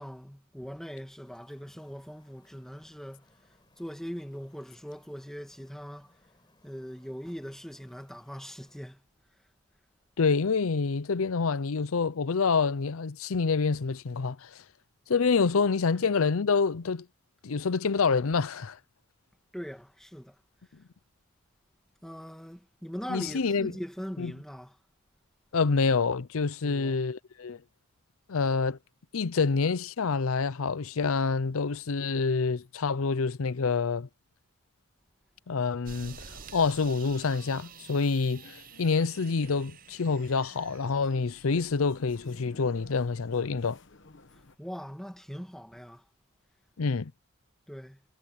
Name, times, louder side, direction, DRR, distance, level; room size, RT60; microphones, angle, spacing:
voice 1, 0.0-3.2 3.8-6.1 6.6-9.0 15.9-16.1 19.5-20.3 22.0-24.7 26.6-27.0 44.6-46.0 47.7-48.0, equal, ahead, 1.7 m, -41 dB
sound 1, 1.2-8.8, left 1 dB, 20° left, 5.0 m, -65 dB
voice 2, 10.2-14.5 15.1-17.1 17.4-18.8 23.1-23.7 24.2-24.3 25.5-27.6 28.3-28.8 29.1-34.1 35.5-36.3 36.5-43.8 46.8-47.1, left 4 dB, 75° left, 0.6 m, -27 dB
sound 2, 35.9-42.3, right 6 dB, 40° right, 0.8 m, -50 dB
sound 3, 38.2-44.6, left 2 dB, 55° left, 1.1 m, -53 dB
head